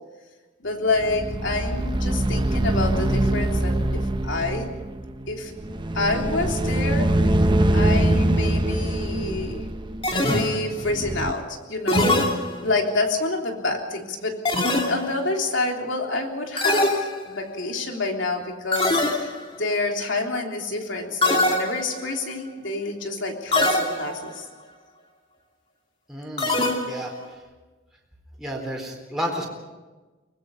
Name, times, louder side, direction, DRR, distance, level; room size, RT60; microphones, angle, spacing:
voice 1, 0.6-4.7 5.3-5.5 5.9-7.4 7.7-9.6 10.2-12.1 12.6-24.5, left 2 dB, 65° left, 2 dB, 3.4 m, -28 dB
sound 1, 1.0-11.3, right 1 dB, 25° right, 0.8 m, -23 dB
sound 2, 10.0-10.9 11.9-12.9 14.5-15.3 16.6-17.6 18.7-19.6 21.2-22.1 23.5-24.3 26.4-27.2, left 2 dB, 25° left, 2.7 m, -23 dB
voice 2, 26.1-26.6 26.8-27.4 28.4-29.5, equal, 5° right, -2 dB, 4.1 m, -31 dB
23.5 x 21.0 x 5.5 m, 1.2 s
head